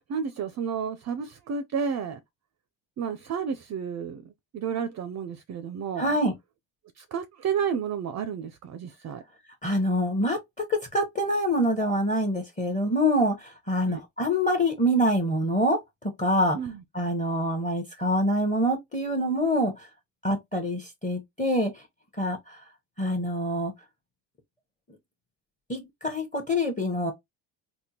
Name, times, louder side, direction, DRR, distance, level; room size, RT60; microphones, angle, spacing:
voice 1, 0.0-2.2 3.0-6.1 7.0-9.2 13.9-14.0 16.6-16.8, right 7 dB, 40° right, 0.4 m, -31 dB
voice 2, 6.0-6.3 9.6-15.8 16.2-16.6 16.9-19.9 20.2-21.7 22.2-22.6 23.0-23.7 25.7-27.1, equal, 15° left, 0.9 m, -25 dB
3.5 x 2.2 x 2.8 m
supercardioid pair, 85°, 45 cm